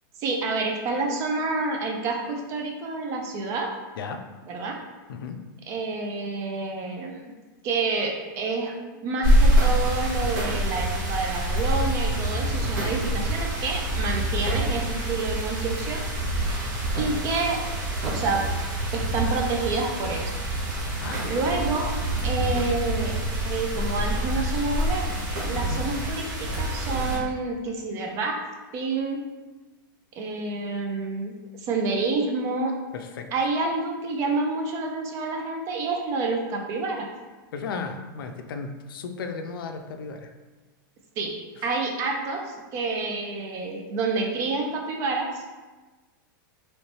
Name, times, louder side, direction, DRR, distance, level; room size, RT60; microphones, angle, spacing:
voice 1, 0.2-3.7 4.5-4.8 5.7-7.4 7.6-16.0 17.0-17.6 18.0-18.4 18.9-20.3 21.2-21.9 22.2-25.1 25.4-26.3 26.6-28.4 28.7-29.2 30.2-31.3 31.6-32.8 33.3-37.1 41.2-41.4 41.6-45.4, right 3 dB, 25° right, 1 dB, 0.4 m, -28 dB
sound 1, 9.2-27.2, right 1 dB, 50° right, 1.0 m, -26 dB
voice 2, 16.3-16.8 21.0-21.4 25.6-25.8 32.9-33.3 37.5-40.2, left 5 dB, 85° left, 6 dB, 0.4 m, -35 dB
3.1 x 3.1 x 2.9 m, 1.2 s
supercardioid pair, 160°, 11 cm